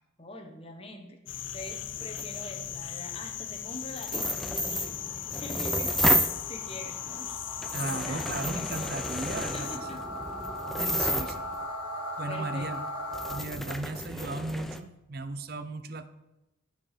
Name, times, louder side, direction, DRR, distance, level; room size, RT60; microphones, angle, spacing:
voice 1, 0.2-6.2 6.5-7.3 7.8-9.1 9.5-10.0 11.0-11.5 12.3-12.7, left 1 dB, 30° left, 4 dB, 1.0 m, -44 dB
sound 1, 1.3-9.8, left 10 dB, 75° left, 0.5 m, -38 dB
sound 2, 2.2-2.3 3.9-6.4 7.1-7.2 7.6-11.6 12.6-12.7 13.1-14.8, equal, ahead, 0.3 m, -31 dB
sound 3, 4.7-13.4, equal, 20° right, 1.4 m, -39 dB
voice 2, 7.7-10.0 10.7-11.3 12.2-12.8 13.3-16.1, right 2 dB, 50° right, 11 dB, 0.6 m, -36 dB
11.5 x 4.6 x 5.0 m, 0.96 s
head